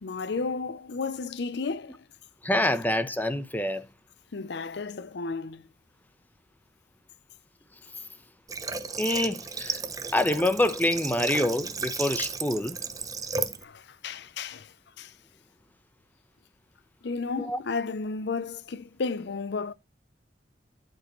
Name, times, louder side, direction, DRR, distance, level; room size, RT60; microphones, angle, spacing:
voice 1, 0.0-2.0 4.3-5.7 13.6-15.1 17.0-19.7, left 4 dB, 65° left, 0.6 m, -33 dB
voice 2, 2.4-3.8 9.0-9.8 10.1-12.8 17.4-17.6, left 1 dB, 10° left, 0.8 m, -26 dB
Water / Water tap faucet, 8.5-13.6, right 4 dB, 20° right, 0.7 m, -34 dB
12.5 x 5.4 x 3.1 m
head